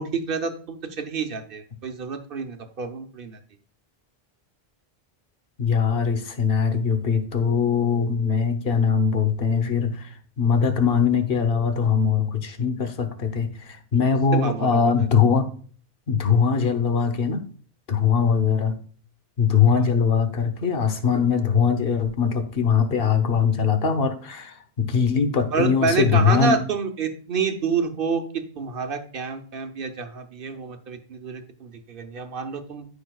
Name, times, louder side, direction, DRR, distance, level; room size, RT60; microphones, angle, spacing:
voice 1, 0.0-3.4 14.3-14.9 19.7-19.9 25.5-32.9, right 5 dB, 65° right, 6 dB, 1.1 m, -28 dB
voice 2, 5.6-10.0 10.4-13.5 13.9-15.5 16.1-17.4 17.9-18.8 19.4-26.6, left 6 dB, 65° left, 8 dB, 1.1 m, -21 dB
13.5 x 5.1 x 2.3 m, 0.43 s
omnidirectional pair, 1.0 m